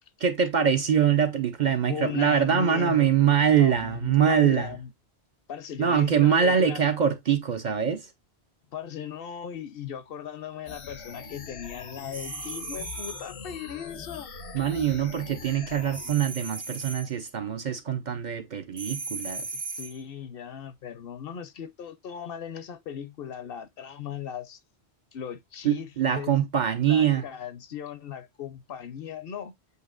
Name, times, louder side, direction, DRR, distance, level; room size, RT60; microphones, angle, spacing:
voice 1, 0.2-4.8 5.8-8.1 14.5-19.5 25.6-27.2, right 8 dB, 55° right, 0.6 m, -23 dB
voice 2, 1.9-3.1 3.5-4.9 5.5-6.8 8.7-14.3 14.6-14.7 19.5-24.6 25.1-25.9 26.1-26.4 26.9-29.5, left 9 dB, 65° left, 0.7 m, -37 dB
sound 1, 10.7-16.1, left 5 dB, 85° left, 1.1 m, -42 dB
sound 2, 12.1-13.3 15.9-17.1 18.8-20.0, right 3 dB, 75° right, 1.4 m, -37 dB
8.0 x 2.8 x 2.3 m
omnidirectional pair, 1.1 m